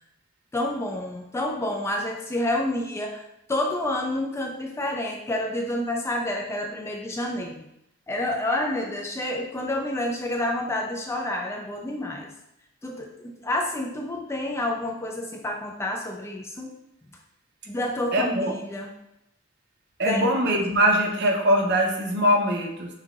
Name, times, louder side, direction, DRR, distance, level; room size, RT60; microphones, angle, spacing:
voice 1, 0.5-7.6 8.1-12.3 12.8-16.7 17.7-18.9 20.0-20.3, left 1 dB, 15° left, 2 dB, 0.3 m, -29 dB
voice 2, 18.1-18.5 20.0-22.9, equal, 55° right, 1 dB, 0.7 m, -22 dB
5.4 x 2.8 x 2.4 m, 0.84 s
head